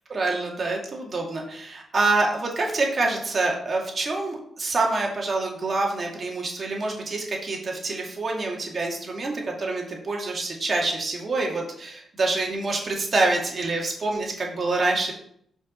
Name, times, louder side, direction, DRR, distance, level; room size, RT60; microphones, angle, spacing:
voice 1, 0.1-15.1, right 3 dB, 45° right, 0 dB, 2.1 m, -26 dB
5.7 x 4.8 x 5.1 m, 0.67 s
cardioid pair, 75°, 0 cm